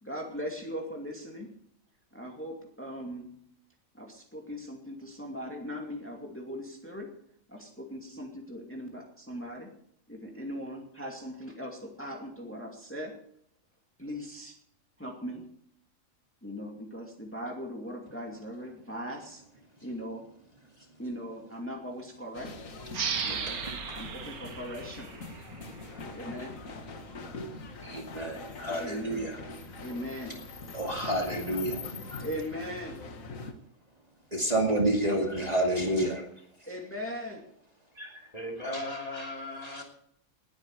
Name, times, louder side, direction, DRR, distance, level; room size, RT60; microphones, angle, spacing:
voice 1, 0.0-1.5 2.1-3.4 3.9-7.1 7.5-9.7 10.1-13.1 14.0-14.6 15.0-15.5 16.4-19.4 19.8-20.2 21.0-22.6 22.8-23.6 23.9-25.1 26.1-26.6 28.5-29.3 29.8-30.4 32.2-33.0 36.7-37.4, equal, 10° left, 0 dB, 2.4 m, -39 dB
sound 1, 22.3-33.5, left 3 dB, 65° left, 1.8 m, -43 dB
sound 2, 22.9-26.2, right 6 dB, 90° right, 1.8 m, -36 dB
voice 2, 27.8-29.4 30.7-32.2 34.3-36.2 38.0-38.1 38.6-38.7 39.7-39.8, right 1 dB, 25° right, 0 dB, 2.5 m, -30 dB
voice 3, 38.3-39.8, left 1 dB, 25° left, 2 dB, 2.8 m, -37 dB
20.0 x 9.5 x 4.7 m, 0.67 s
omnidirectional pair, 1.5 m